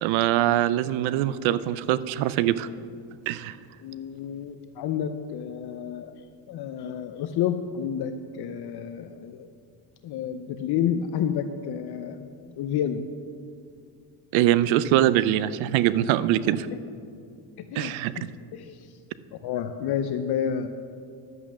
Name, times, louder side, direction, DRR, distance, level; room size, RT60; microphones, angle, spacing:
voice 1, 0.0-2.7 3.3-3.6 14.3-16.7 17.8-18.1, right 13 dB, 85° right, 16 dB, 0.6 m, -23 dB
voice 2, 3.8-6.1 6.5-9.5 10.0-12.3 12.6-13.0 17.6-18.2 18.5-18.9 19.4-20.7, left 8 dB, 55° left, 8 dB, 0.6 m, -30 dB
11.0 x 8.1 x 6.2 m, 2.3 s
cardioid pair, 130°, 46 cm